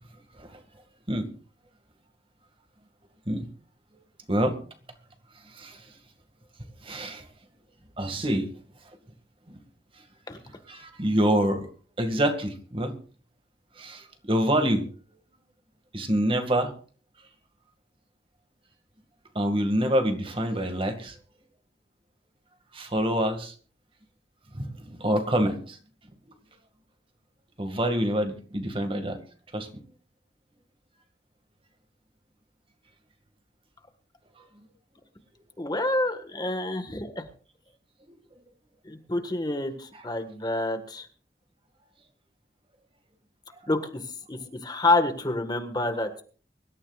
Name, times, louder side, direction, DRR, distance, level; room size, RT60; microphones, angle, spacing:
voice 1, 5.5-5.9 6.8-7.3 8.0-8.5 9.5-9.6 10.7-11.7 12.0-12.9 13.8-14.9 15.9-16.7 19.3-21.2 22.7-23.5 24.5-25.8 27.6-29.2 29.5-29.7 34.4-34.5 38.1-38.2 39.9-40.1, right 1 dB, 30° right, 6 dB, 2.0 m, -26 dB
voice 2, 35.6-37.2 38.8-41.1 43.7-46.2, left 2 dB, 25° left, 7 dB, 1.6 m, -28 dB
24.5 x 13.0 x 2.4 m, 0.41 s
head